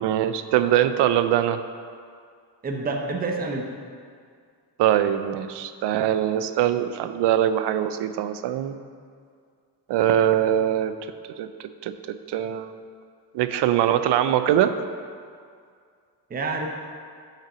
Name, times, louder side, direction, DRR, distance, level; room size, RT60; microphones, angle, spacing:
voice 1, 0.0-1.6 4.8-8.8 9.9-10.9 11.4-12.7 13.3-14.7, right 11 dB, 85° right, 11 dB, 0.6 m, -22 dB
voice 2, 2.6-3.7 16.3-16.7, right 3 dB, 20° right, 1 dB, 0.7 m, -27 dB
5.9 x 5.8 x 6.1 m, 2.2 s
cardioid pair, 135°, 40 cm